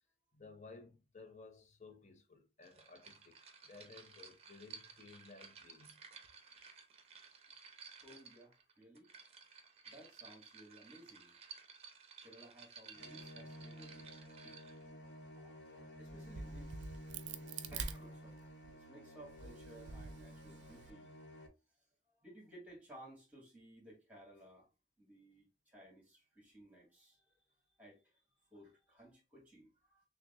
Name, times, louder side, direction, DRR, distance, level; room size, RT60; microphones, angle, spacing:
voice 1, 0.3-3.3 3.6-6.0, left 3 dB, 40° left, 0.6 m, -56 dB
sound 1, 2.6-14.9, right 6 dB, 35° right, 0.6 m, -56 dB
voice 2, 8.0-9.1 9.9-11.3 12.2-14.2 14.4-14.6 15.4-16.7 17.4-18.3 18.7-21.1 22.2-24.7 25.0-27.3 27.8-28.2 28.5-30.1, right 1 dB, 10° right, 1.7 m, -58 dB
sound 2, 12.9-21.5, equal, 80° left, 0.9 m, -52 dB
Crack, 16.1-18.7 19.2-20.9, right 5 dB, 85° right, 0.4 m, -46 dB
6.1 x 2.1 x 2.5 m
head